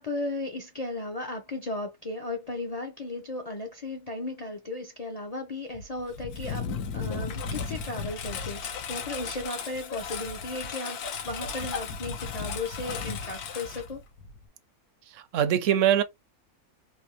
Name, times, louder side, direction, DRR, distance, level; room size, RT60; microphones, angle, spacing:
voice 1, 0.0-11.0 11.2-14.0, left 2 dB, 55° left, 0.4 m, -35 dB
Engine, 5.7-14.5, left 6 dB, 90° left, 1.3 m, -35 dB
voice 2, 15.1-16.0, right 10 dB, 70° right, 0.8 m, -23 dB
3.4 x 2.6 x 2.9 m
omnidirectional pair, 1.6 m